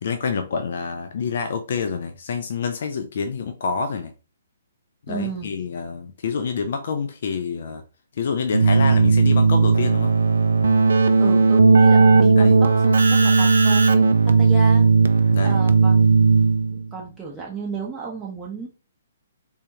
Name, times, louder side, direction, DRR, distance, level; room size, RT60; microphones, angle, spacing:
voice 1, 0.0-4.1 5.1-7.8 8.2-10.2 12.4-12.6 15.3-15.6, left 5 dB, 55° left, 0.3 m, -27 dB
voice 2, 5.1-5.5 11.2-14.9 15.2-18.7, right 5 dB, 10° right, 0.6 m, -33 dB
Keyboard (musical), 8.5-16.9, right 4 dB, 65° right, 0.3 m, -16 dB
3.4 x 2.2 x 2.8 m
figure-of-eight pair, 125°, 0 cm